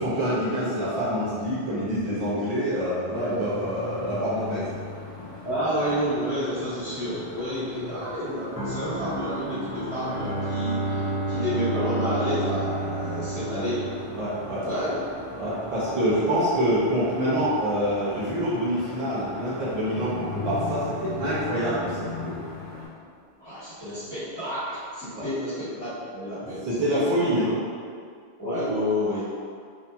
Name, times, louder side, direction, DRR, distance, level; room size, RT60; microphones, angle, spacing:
voice 1, 0.0-4.7 14.2-14.6 15.4-22.4 25.1-25.2 26.6-27.5, equal, 40° right, -10 dB, 0.8 m, -26 dB
sound 1, 3.1-22.9, left 2 dB, 70° left, 1.3 m, -39 dB
voice 2, 5.4-13.8 14.5-14.9 23.4-27.4 28.4-29.2, equal, 10° left, -17 dB, 1.2 m, -30 dB
sound 2, 8.5-22.5 22.9-23.1, equal, 10° right, 0.4 m, -41 dB
Bowed string instrument, 9.8-14.8, right 2 dB, 40° left, 0.7 m, -31 dB
2.9 x 2.6 x 2.3 m, 2.2 s
omnidirectional pair, 1.1 m